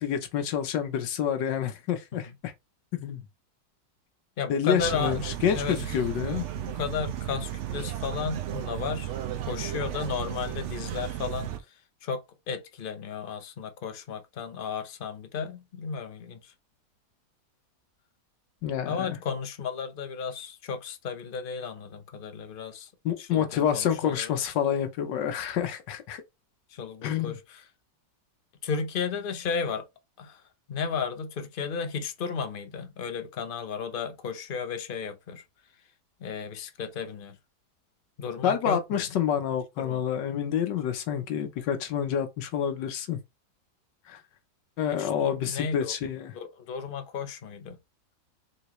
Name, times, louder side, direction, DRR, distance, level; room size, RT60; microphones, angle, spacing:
voice 1, 0.0-2.5 2.9-3.2 4.5-6.4 18.6-19.2 23.0-26.2 27.0-27.4 38.4-43.2 44.1-44.2 44.8-46.3, left 8 dB, 85° left, 1.4 m, -28 dB
voice 2, 4.4-5.2 5.5-9.1 9.5-11.5 12.0-12.2 12.5-16.4 18.8-22.9 23.3-24.4 26.7-27.4 28.6-29.8 30.2-30.4 30.7-35.4 36.2-37.4 38.2-38.8 39.8-40.0 44.9-45.9 46.3-47.8, left 6 dB, 50° left, 0.6 m, -34 dB
sound 1, 4.8-11.6, right 12 dB, 60° right, 0.8 m, -34 dB
3.9 x 3.7 x 3.1 m
omnidirectional pair, 1.9 m